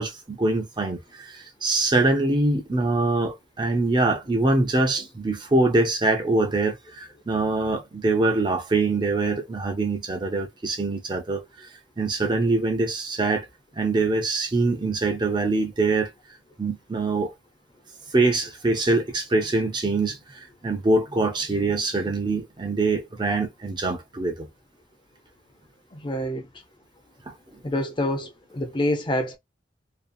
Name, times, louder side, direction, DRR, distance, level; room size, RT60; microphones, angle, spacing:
voice 1, 0.0-11.7 12.0-13.5 13.8-16.1 16.6-17.3 18.1-24.5 27.3-27.4, right 2 dB, 25° right, 0.5 m, -24 dB
voice 2, 25.9-26.5 27.6-29.4, left 1 dB, 25° left, 0.5 m, -27 dB
2.5 x 2.3 x 2.6 m
head